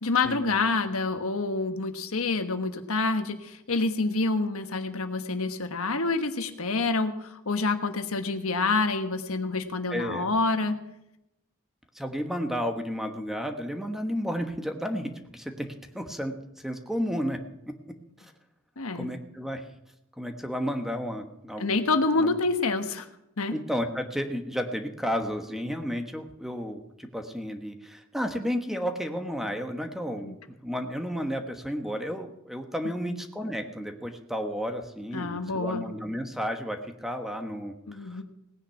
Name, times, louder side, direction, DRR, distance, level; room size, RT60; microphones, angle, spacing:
voice 1, 0.0-10.8 18.8-19.1 21.6-23.1 23.4-23.6 30.2-30.3 35.1-35.9 37.9-38.2, left 3 dB, 70° left, 7 dB, 1.3 m, -27 dB
voice 2, 9.9-10.3 11.9-15.7 15.9-16.3 16.6-17.4 18.9-19.6 20.2-21.8 22.2-22.3 23.5-30.3 30.6-38.2, equal, ahead, 5 dB, 1.2 m, -32 dB
18.0 x 9.8 x 5.8 m, 0.84 s
head